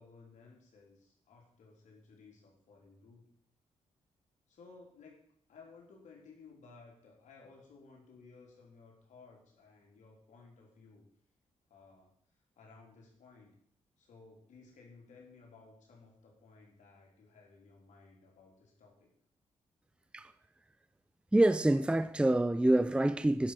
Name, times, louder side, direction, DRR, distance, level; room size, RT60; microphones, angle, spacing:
voice 1, 0.0-3.3 4.5-5.2 5.5-11.1 11.7-12.1 12.6-13.5 14.0-19.1, left 4 dB, 75° left, 3.6 m, -57 dB
voice 2, 21.3-23.5, right 1 dB, 10° right, 0.5 m, -26 dB
11.5 x 5.6 x 6.4 m
cardioid pair, 65°, 13 cm